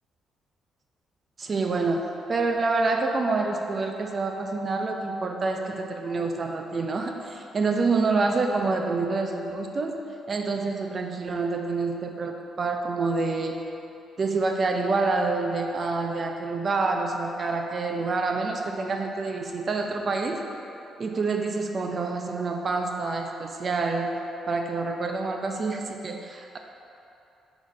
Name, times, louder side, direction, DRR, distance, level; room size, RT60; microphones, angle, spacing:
voice 1, 1.4-13.6 14.2-20.4 21.0-24.2 24.5-26.6, right 3 dB, 40° right, 3 dB, 0.6 m, -27 dB
5.0 x 3.8 x 5.3 m, 2.8 s
cardioid pair, 90°, 0 cm